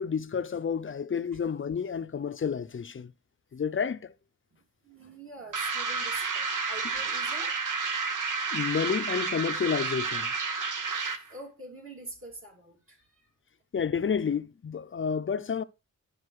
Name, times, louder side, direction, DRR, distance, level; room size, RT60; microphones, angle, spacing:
voice 1, 0.0-3.1 3.5-4.1 8.5-10.3 13.7-15.6, left 6 dB, 40° left, 0.5 m, -30 dB
voice 2, 4.8-7.6 11.3-13.1, right 2 dB, 45° right, 2.6 m, -45 dB
sound 1, 5.5-11.3, right 4 dB, 85° right, 1.2 m, -31 dB
11.5 x 5.3 x 4.7 m
wide cardioid pair, 135°, 31 cm